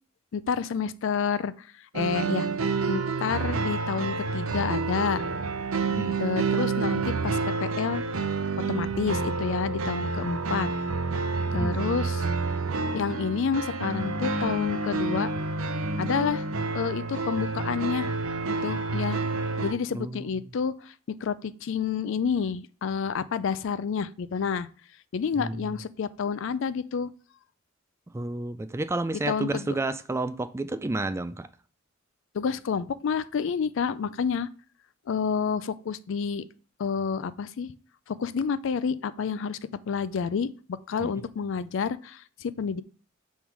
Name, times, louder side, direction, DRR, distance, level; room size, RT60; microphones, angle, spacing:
voice 1, 0.3-1.7 1.9-2.5 2.9-5.2 6.2-8.0 8.7-10.7 11.5-12.3 12.9-15.3 16.0-16.5 16.7-18.1 18.5-19.2 19.6-20.9 21.2-24.7 25.1-27.1 29.3-29.7 32.3-34.5 35.1-36.4 36.8-37.7 38.1-39.6 39.9-40.5 40.9-42.8, left 6 dB, 65° left, 0.4 m, -29 dB
sound 1, 1.9-19.7, right 4 dB, 90° right, 0.6 m, -29 dB
voice 2, 5.8-6.2 11.5-11.8 19.9-20.2 25.4-25.7 28.1-31.5 41.0-41.2, right 2 dB, 15° right, 0.3 m, -31 dB
6.3 x 3.6 x 6.0 m
head